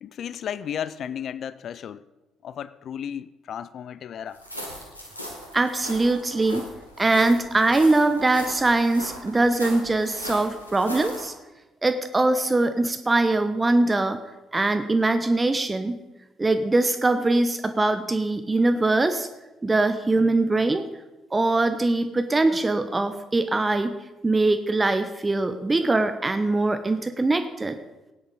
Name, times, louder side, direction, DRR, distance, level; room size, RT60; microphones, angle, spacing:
voice 1, 0.0-2.0 2.4-4.4, left 9 dB, 50° left, 17 dB, 0.4 m, -34 dB
sound 1, 4.3-11.3, equal, 90° left, 1.5 m, -39 dB
voice 2, 5.5-6.7 7.0-11.3 11.8-14.2 14.5-16.0 16.4-19.3 19.6-20.8 21.3-23.9 24.2-27.8, right 2 dB, 20° right, 9 dB, 0.8 m, -22 dB
17.5 x 9.6 x 4.0 m, 1.1 s
figure-of-eight pair, 45°, 0 cm